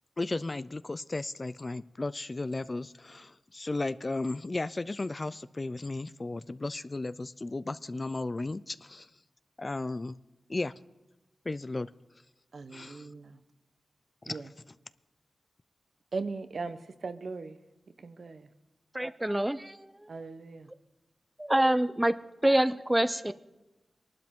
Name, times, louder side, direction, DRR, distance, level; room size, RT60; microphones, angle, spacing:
voice 1, 0.2-9.1 9.6-10.2 10.5-10.7 11.5-11.9 12.7-13.1 14.2-14.4, left 2 dB, 35° left, 16 dB, 0.4 m, -35 dB
voice 2, 12.5-13.4 14.3-14.5 16.1-17.6 18.0-18.5 20.1-20.7, right 4 dB, 65° right, 10 dB, 0.9 m, -38 dB
voice 3, 18.9-19.9 21.4-22.1 22.4-23.3, right 1 dB, 10° right, 14 dB, 0.6 m, -26 dB
22.5 x 12.0 x 3.7 m, 1.1 s
wide cardioid pair, 75°, 0 cm